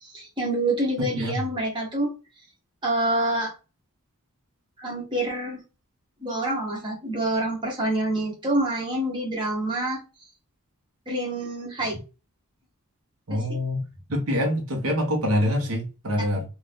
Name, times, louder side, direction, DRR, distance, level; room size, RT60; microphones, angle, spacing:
voice 1, 0.0-2.1 2.8-3.5 4.8-5.6 6.2-10.0 11.1-12.0 13.3-13.4, right 1 dB, 20° right, 1.1 m, -27 dB
voice 2, 13.3-13.8 14.1-16.4, equal, 70° right, 0.9 m, -25 dB
2.6 x 2.4 x 3.3 m
head